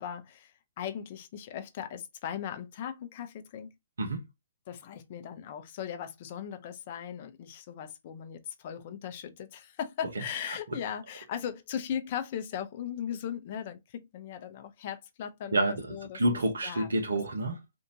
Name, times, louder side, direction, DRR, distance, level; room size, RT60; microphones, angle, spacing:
voice 1, 0.0-3.8 4.7-16.2 16.6-16.9, left 9 dB, 40° left, 0.7 m, -38 dB
voice 2, 15.5-17.6, right 1 dB, 70° right, 1.0 m, -29 dB
3.5 x 2.7 x 2.8 m
figure-of-eight pair, 125°, 0 cm